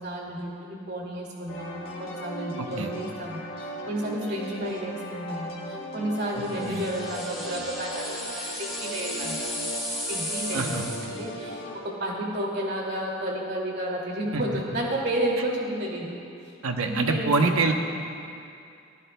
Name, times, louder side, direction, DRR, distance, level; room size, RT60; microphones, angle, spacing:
voice 1, 0.0-9.8 10.1-10.8 11.0-16.2 16.8-17.7, right 1 dB, 50° right, -2 dB, 2.5 m, -32 dB
sound 1, 1.5-11.8, equal, 45° left, 1.9 m, -38 dB
voice 2, 2.6-2.9 6.6-6.8 10.5-10.9 14.3-14.4 16.6-17.7, right 3 dB, 90° right, 4 dB, 1.0 m, -25 dB
sound 2, 6.4-11.3, left 1 dB, ahead, 2.4 m, -35 dB
23.0 x 15.5 x 2.3 m, 2.5 s
head